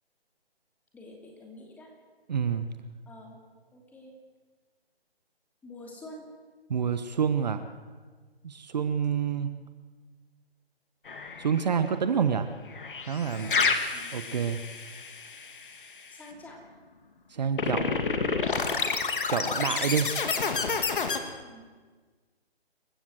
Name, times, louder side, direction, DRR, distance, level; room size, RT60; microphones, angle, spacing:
voice 1, 0.9-1.9 3.1-3.4 3.7-4.1 5.6-6.3 13.4-14.3 16.1-16.6 21.4-21.7, left 1 dB, 5° left, 0 dB, 2.8 m, -48 dB
voice 2, 2.3-2.8 6.7-7.7 8.4-9.6 11.4-12.5 13.1-13.5 14.1-14.7 17.3-18.0 19.3-20.2, right 7 dB, 40° right, 10 dB, 1.2 m, -28 dB
sound 1, 11.1-11.7 12.7-15.9 17.6-21.2, left 5 dB, 55° left, 2.6 m, -29 dB
27.5 x 16.0 x 7.8 m, 1.4 s
figure-of-eight pair, 155°, 32 cm